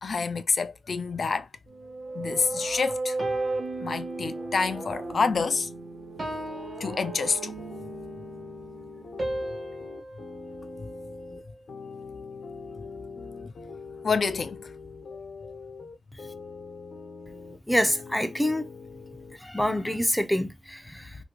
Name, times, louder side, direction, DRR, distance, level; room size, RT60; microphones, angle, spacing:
voice 1, 0.0-1.5 2.1-3.2 3.8-5.7 6.8-7.6 14.0-14.7, left 5 dB, 60° left, 0.4 m, -27 dB
sound 1, 1.7-9.4, right 3 dB, 75° right, 1.2 m, -36 dB
sound 2, 3.2-4.7 5.2-5.5 6.2-7.9 9.2-11.6, right 1 dB, 45° right, 1.3 m, -38 dB
sound 3, 7.6-19.4, left 4 dB, 80° left, 0.8 m, -43 dB
voice 2, 17.7-18.7 19.4-21.2, equal, 5° left, 0.5 m, -26 dB
2.7 x 2.6 x 2.9 m
wide cardioid pair, 90°, 0 cm